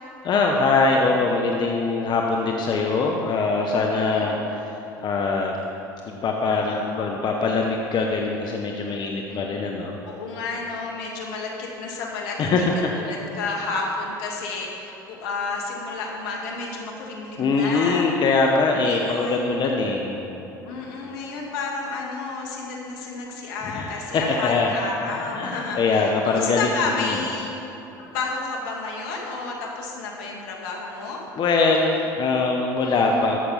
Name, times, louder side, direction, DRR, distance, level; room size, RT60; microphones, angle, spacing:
voice 1, 0.2-4.4 4.6-4.7 5.0-5.5 6.1-10.0 12.4-12.9 17.4-20.5 23.6-24.8 25.3-26.7 27.0-27.2 31.4-33.4, left 3 dB, 45° left, 1 dB, 1.1 m, -22 dB
voice 2, 3.9-4.3 6.5-7.2 9.3-9.4 10.1-12.5 12.9-18.1 18.8-19.6 20.7-27.6 28.1-31.2 32.8-33.3, left 3 dB, 70° left, -1 dB, 2.0 m, -31 dB
14.0 x 6.6 x 5.6 m, 3.0 s
hypercardioid pair, 70°, 11 cm